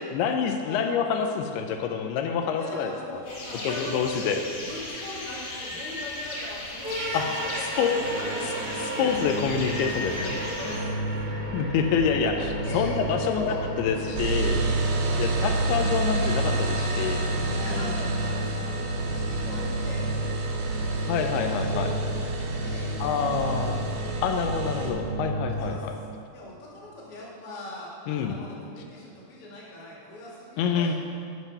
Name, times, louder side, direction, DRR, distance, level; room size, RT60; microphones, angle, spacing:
voice 1, 0.1-3.2 3.6-4.4 7.1-8.0 8.8-10.3 11.5-14.6 15.2-17.2 17.5-17.9 21.1-21.9 23.0-23.8 24.2-25.9 28.1-28.4 30.6-30.9, left 6 dB, 85° left, 4 dB, 2.5 m, -27 dB
voice 2, 2.6-4.1 4.6-7.1 7.4-8.7 9.0-9.1 10.6-11.1 12.6-13.0 13.3-13.6 14.2-15.2 17.5-20.1 20.7-23.0 24.8-24.9 25.5-25.8 26.3-30.9, left 1 dB, 45° left, -5 dB, 2.3 m, -41 dB
sound 1, 3.2-10.8, left 2 dB, 65° left, 3.3 m, -37 dB
sound 2, 6.8-25.8, right 1 dB, 55° right, 1.1 m, -32 dB
sound 3, 14.2-24.9, right 2 dB, 80° right, 1.5 m, -29 dB
9.7 x 6.1 x 5.3 m, 2.4 s
omnidirectional pair, 4.5 m